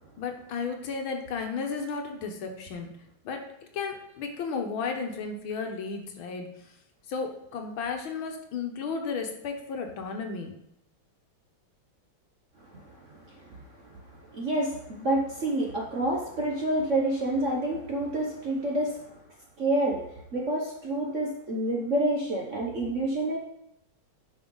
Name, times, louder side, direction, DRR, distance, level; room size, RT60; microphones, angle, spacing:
voice 1, 0.2-2.9 3.3-3.4 3.7-6.5 7.1-10.6, left 5 dB, 70° left, 4 dB, 1.7 m, -33 dB
voice 2, 12.7-14.0 14.3-19.2 19.6-20.0 20.3-23.4, right 1 dB, 45° right, -2 dB, 1.0 m, -28 dB
9.5 x 5.4 x 3.9 m, 0.80 s
omnidirectional pair, 2.4 m